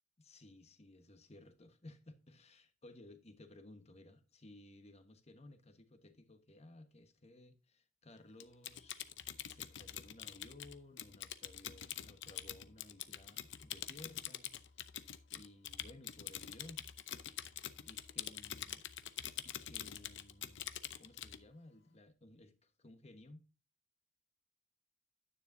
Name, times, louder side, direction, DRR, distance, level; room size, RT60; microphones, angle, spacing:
voice 1, 0.2-9.1 9.4-14.8 15.3-16.8 17.8-18.8 19.4-23.5, left 2 dB, 35° left, 1.2 m, -58 dB
Typing, 8.4-21.4, left 11 dB, 65° left, 0.7 m, -45 dB
10.0 x 9.7 x 2.6 m
head